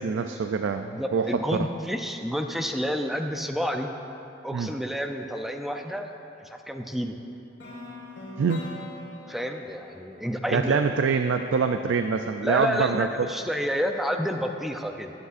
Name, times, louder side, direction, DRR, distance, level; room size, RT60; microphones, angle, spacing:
voice 1, 0.0-1.7 4.5-4.7 8.4-8.7 10.5-13.1, right 5 dB, 85° right, 7 dB, 0.4 m, -25 dB
voice 2, 0.9-3.9 4.4-6.1 6.4-7.2 9.3-10.8 12.4-15.1, equal, ahead, 4 dB, 0.4 m, -29 dB
sound 1, 7.6-11.6, left 2 dB, 65° left, 1.6 m, -43 dB
20.0 x 8.1 x 2.5 m, 3.0 s
head